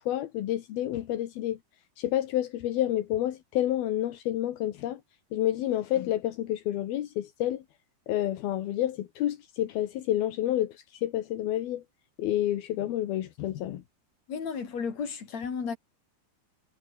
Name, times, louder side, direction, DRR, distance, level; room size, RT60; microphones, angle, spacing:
voice 1, 0.0-1.6 2.0-5.0 5.3-7.6 8.1-11.8 12.2-13.8, left 13 dB, 75° left, 3.4 m, -29 dB
voice 2, 14.3-15.8, left 6 dB, 45° left, 4.9 m, -33 dB
omnidirectional pair, 4.4 m